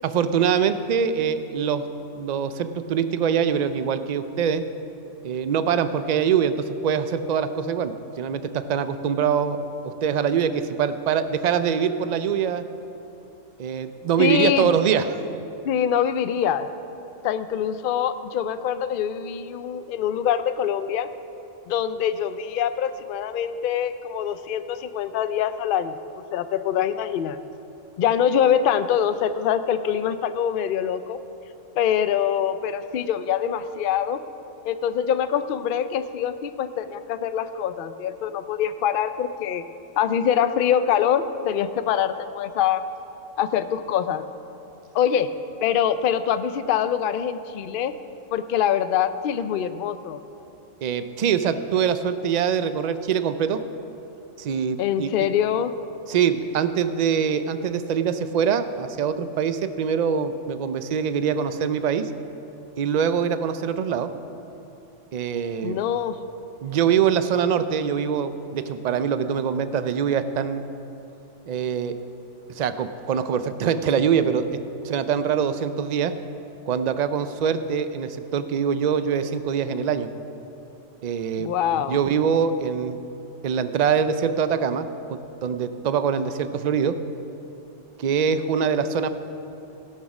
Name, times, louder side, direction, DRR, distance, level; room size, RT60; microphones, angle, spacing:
voice 1, 0.0-1.8 2.1-4.6 5.2-12.6 13.6-15.3 50.8-53.6 54.4-55.1 56.1-62.1 62.8-64.1 65.1-65.8 66.6-70.6 71.5-71.9 72.5-74.5 74.8-76.1 76.7-80.1 81.0-83.0 83.4-86.9 88.0-89.1, right 7 dB, 65° right, 11 dB, 0.4 m, -24 dB
voice 2, 14.2-14.7 15.6-16.7 17.2-21.1 21.7-26.0 26.3-27.4 28.0-31.2 31.8-34.2 34.6-39.6 40.0-42.8 43.4-44.2 44.9-45.3 45.6-47.9 48.3-50.2 54.8-55.7 65.6-66.2 81.4-82.0, left 9 dB, 60° left, 11 dB, 0.6 m, -24 dB
17.5 x 6.4 x 6.0 m, 2.9 s
omnidirectional pair, 1.3 m